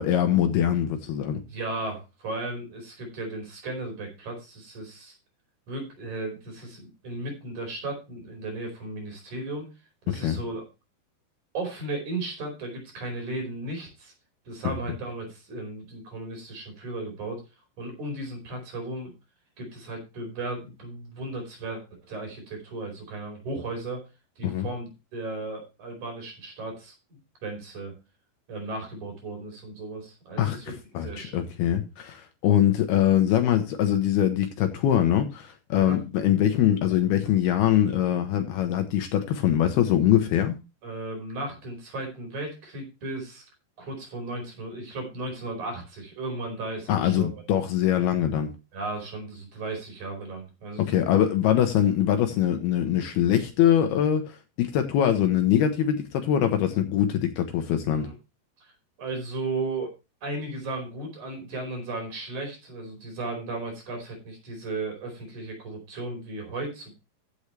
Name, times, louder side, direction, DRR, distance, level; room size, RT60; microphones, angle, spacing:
voice 1, 0.0-1.4 10.1-10.4 24.4-24.7 30.4-30.6 30.9-40.6 46.9-48.5 50.8-58.1, left 10 dB, 70° left, 2.8 m, -23 dB
voice 2, 1.4-5.2 5.7-9.7 10.1-10.6 11.5-14.1 14.5-17.4 17.8-19.1 19.6-24.0 24.4-27.9 28.5-30.7 31.0-31.4 35.8-36.0 40.8-43.4 43.8-47.3 48.7-51.0 57.9-58.1 59.0-59.9 60.2-66.9, right 2 dB, 45° right, 5.9 m, -35 dB
15.0 x 7.3 x 3.3 m
omnidirectional pair, 5.0 m